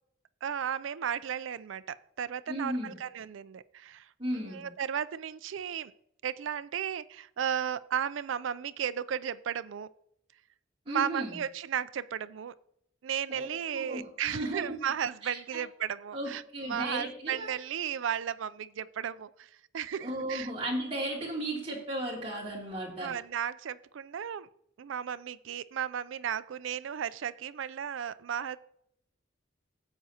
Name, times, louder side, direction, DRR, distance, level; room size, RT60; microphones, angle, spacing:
voice 1, 0.4-5.9 6.2-9.9 10.9-12.5 13.0-20.5 23.0-24.5 24.8-28.6, right 8 dB, 75° right, 16 dB, 0.4 m, -35 dB
voice 2, 2.5-3.0 4.2-4.7 10.9-11.4 13.3-13.5 13.7-14.8 15.2-15.6 16.1-17.5 20.0-23.2, right 1 dB, 30° right, -4 dB, 2.8 m, -35 dB
13.5 x 8.2 x 2.8 m, 0.73 s
head